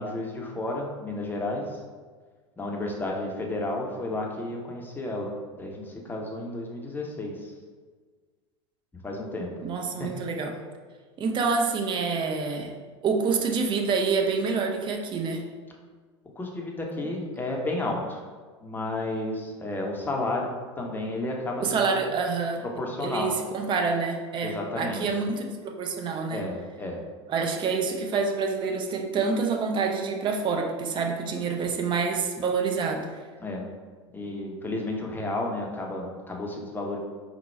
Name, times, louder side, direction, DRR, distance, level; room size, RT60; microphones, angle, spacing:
voice 1, 0.0-1.8 2.6-7.5 9.0-9.5 10.0-10.1 16.4-18.2 18.6-22.0 22.8-23.3 24.4-25.0 26.3-27.0 33.4-33.6 34.1-37.0, left 2 dB, 10° left, 0 dB, 0.8 m, -32 dB
voice 2, 9.6-10.6 11.2-12.7 13.0-15.4 21.6-22.6 23.0-26.5 27.3-33.1, right 4 dB, 30° right, 3 dB, 0.6 m, -27 dB
4.3 x 2.2 x 4.2 m, 1.5 s
figure-of-eight pair, 80°, 15 cm